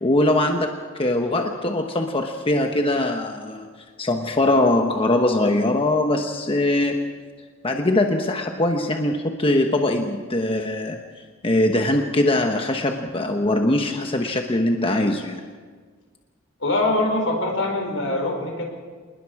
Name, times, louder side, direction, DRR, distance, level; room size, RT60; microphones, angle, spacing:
voice 1, 0.0-0.7 1.0-3.7 4.0-7.1 7.6-11.0 11.4-15.4, left 1 dB, 30° left, 4 dB, 1.1 m, -21 dB
voice 2, 16.6-18.6, left 2 dB, 75° left, 2 dB, 5.0 m, -23 dB
27.0 x 20.5 x 4.8 m, 1.5 s
head